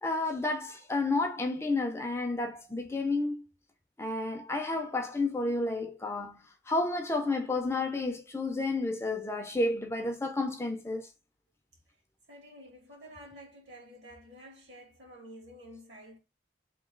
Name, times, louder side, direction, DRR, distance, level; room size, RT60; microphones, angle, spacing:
voice 1, 0.0-3.4 4.0-11.1, left 2 dB, 15° left, 0.5 m, -31 dB
voice 2, 12.3-16.2, equal, 70° right, 1.6 m, -50 dB
3.0 x 2.7 x 3.6 m
head